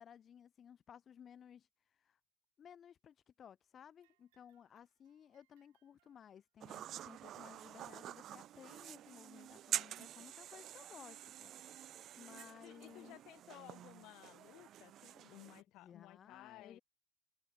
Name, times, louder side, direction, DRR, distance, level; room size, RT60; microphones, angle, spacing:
voice 1, 0.0-2.2 2.6-11.5 12.2-13.2 15.8-16.8, left 8 dB, 25° left, 1.8 m, -58 dB
sound 1, 3.9-6.7 7.7-7.8 8.6-8.7 9.6-9.7, right 22 dB, 80° right, 5.1 m, -82 dB
sound 2, 6.6-15.6, right 11 dB, 35° right, 0.5 m, -47 dB
voice 2, 12.6-16.8, left 18 dB, 50° left, 0.5 m, -57 dB
cardioid pair, 155°, 0 cm